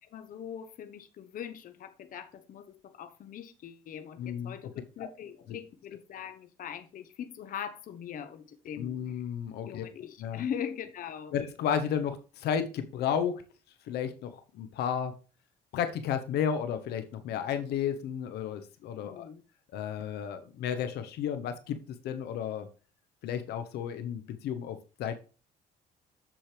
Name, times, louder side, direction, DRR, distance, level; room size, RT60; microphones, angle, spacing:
voice 1, 0.0-9.2 9.6-11.3 19.0-19.4, left 8 dB, 55° left, 1.1 m, -41 dB
voice 2, 4.2-4.6 5.0-5.1 8.8-9.8 10.2-10.4 11.3-13.4 13.9-15.1 15.7-19.3 19.7-21.8 22.0-22.7 23.2-25.1, left 8 dB, 75° left, 1.1 m, -32 dB
7.5 x 7.5 x 3.4 m
cardioid pair, 110°, 17 cm